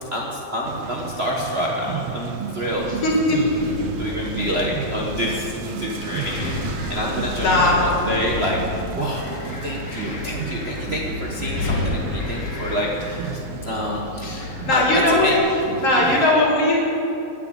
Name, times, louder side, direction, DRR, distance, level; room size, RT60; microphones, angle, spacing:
voice 1, 0.1-2.9 3.3-3.5 4.0-9.3 9.6-15.4 16.0-16.3, equal, 50° right, -3 dB, 0.7 m, -27 dB
sound 1, 0.6-16.3, right 8 dB, 85° right, 1.3 m, -33 dB
Wind, 2.7-15.4, left 3 dB, 80° left, 3.6 m, -31 dB
voice 2, 2.9-3.6 4.3-4.4 7.3-7.9 14.6-15.4 15.8-16.8, left 2 dB, 50° left, -3 dB, 3.7 m, -19 dB
20.0 x 6.9 x 8.6 m, 2.9 s
omnidirectional pair, 3.5 m